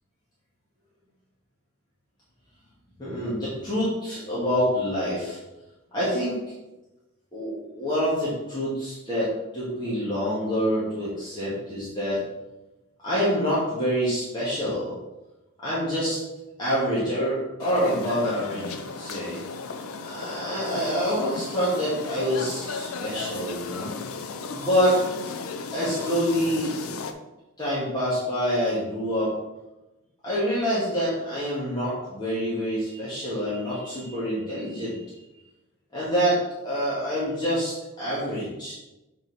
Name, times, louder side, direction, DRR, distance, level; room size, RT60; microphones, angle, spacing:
voice 1, 3.0-5.4 5.9-6.4 7.3-12.2 13.0-14.9 15.6-16.2 16.6-19.4 20.0-23.9 24.5-25.0 25.3-25.4 25.7-26.7 27.6-29.4 30.2-35.0 35.9-36.4 36.6-38.7, equal, 20° left, -10 dB, 1.9 m, -26 dB
sound 1, 17.6-27.1, left 4 dB, 70° left, 0.6 m, -35 dB
6.6 x 4.4 x 4.1 m, 1.0 s
head